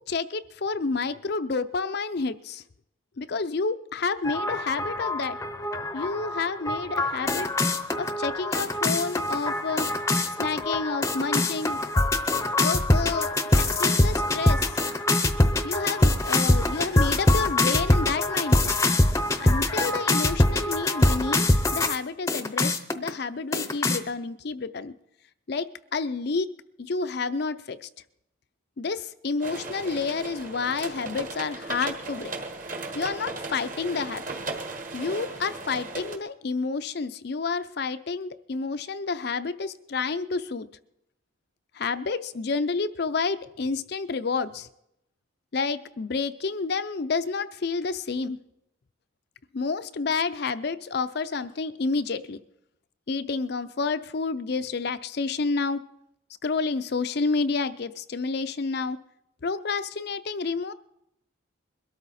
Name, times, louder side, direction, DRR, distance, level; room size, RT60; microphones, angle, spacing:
voice 1, 0.0-2.6 3.2-5.4 5.9-7.5 8.0-9.9 10.4-11.8 12.6-13.3 13.6-14.7 15.6-18.7 19.4-21.4 21.7-24.9 25.5-26.5 26.8-27.9 28.8-32.3 32.9-34.2 34.9-40.7 41.8-44.7 45.5-48.4 49.5-52.4 53.1-55.8 56.4-59.0 59.4-60.7, left 4 dB, 50° left, 11 dB, 0.5 m, -29 dB
sound 1, 4.2-22.0 22.3-23.1 23.5-24.0, left 2 dB, 15° left, 0.7 m, -24 dB
sound 2, 29.4-36.2, right 3 dB, 40° right, 1.5 m, -36 dB
22.0 x 13.0 x 4.2 m, 0.82 s
head